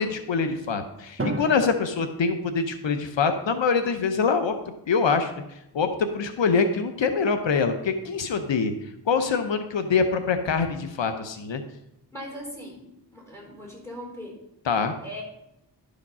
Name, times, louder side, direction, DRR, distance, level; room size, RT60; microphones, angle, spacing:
voice 1, 0.0-4.6 4.9-5.3 5.7-8.7 9.1-11.6 14.7-14.9, left 5 dB, 85° left, 8 dB, 0.8 m, -24 dB
Drum, 1.2-3.3, right 2 dB, 30° right, 1.3 m, -35 dB
voice 2, 12.1-14.4 15.0-15.2, equal, 5° left, -1 dB, 3.9 m, -40 dB
11.5 x 5.0 x 5.5 m, 0.84 s
wide cardioid pair, 60°, 44 cm